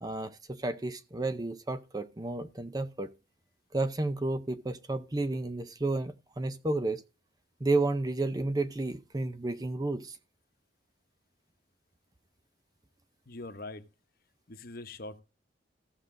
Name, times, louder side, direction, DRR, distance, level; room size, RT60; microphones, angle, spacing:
voice 1, 0.0-3.1 3.7-7.0 7.6-10.2, right 2 dB, 20° right, 0.6 m, -31 dB
voice 2, 13.3-13.8 14.5-15.2, left 2 dB, 50° left, 1.1 m, -42 dB
15.0 x 6.6 x 3.7 m
head